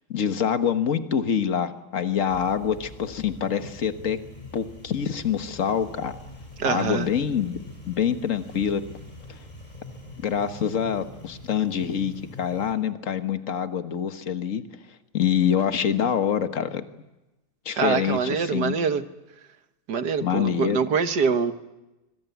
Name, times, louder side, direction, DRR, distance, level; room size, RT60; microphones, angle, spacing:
voice 1, 0.1-4.2 4.5-6.1 6.6-7.6 7.9-8.8 9.3-9.4 10.2-14.6 15.1-16.8 17.6-18.7 20.2-20.8, left 8 dB, 40° left, 9 dB, 1.5 m, -25 dB
sound 1, 2.3-12.7, left 1 dB, 20° left, 7.1 m, -44 dB
voice 2, 6.6-7.1 17.8-19.0 19.9-21.5, right 6 dB, 55° right, 9 dB, 1.8 m, -24 dB
25.5 x 23.0 x 9.3 m, 1.0 s
omnidirectional pair, 2.3 m